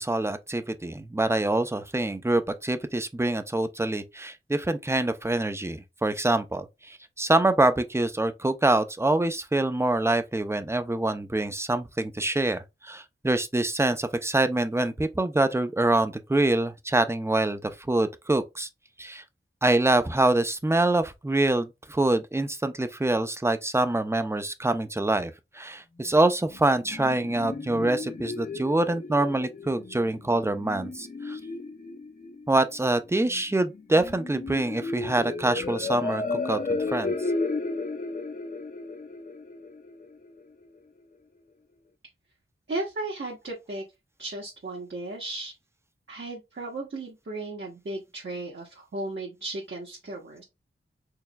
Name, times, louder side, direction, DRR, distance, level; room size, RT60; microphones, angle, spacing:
voice 1, 0.0-18.7 19.0-19.2 19.6-31.4 32.5-37.2, right 2 dB, 10° right, 0.6 m, -25 dB
sound 1, 26.5-40.5, left 3 dB, 40° left, 0.6 m, -34 dB
voice 2, 42.7-43.8 44.2-45.5 46.1-50.4, right 2 dB, 60° right, 1.2 m, -35 dB
4.6 x 3.0 x 2.3 m
wide cardioid pair, 45°, 21 cm